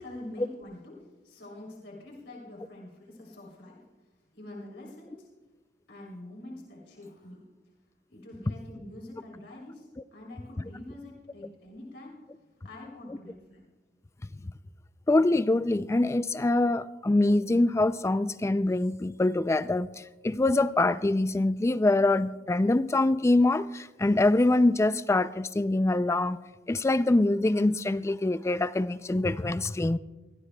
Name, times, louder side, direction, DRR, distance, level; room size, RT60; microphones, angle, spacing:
voice 1, 0.0-3.8 4.3-5.3 5.9-7.4 8.1-12.2 12.6-13.6, left 1 dB, 85° left, -2 dB, 3.2 m, -45 dB
voice 2, 15.1-19.9 20.2-26.4 26.7-30.0, left 2 dB, 15° left, 14 dB, 0.3 m, -24 dB
22.5 x 16.5 x 2.2 m, 1.2 s
head